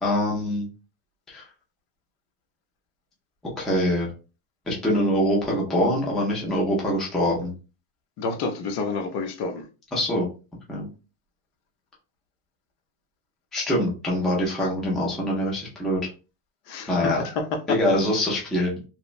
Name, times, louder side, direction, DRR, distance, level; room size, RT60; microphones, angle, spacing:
voice 1, 0.0-0.7 1.3-1.4 3.6-4.1 4.7-7.5 9.9-10.3 10.7-10.9 13.5-16.0 16.9-17.2 17.7-18.7, left 1 dB, ahead, 0.4 m, -24 dB
voice 2, 8.2-9.7 16.7-17.8, left 4 dB, 55° left, 0.6 m, -29 dB
3.0 x 2.1 x 2.4 m
cardioid pair, 140°, 48 cm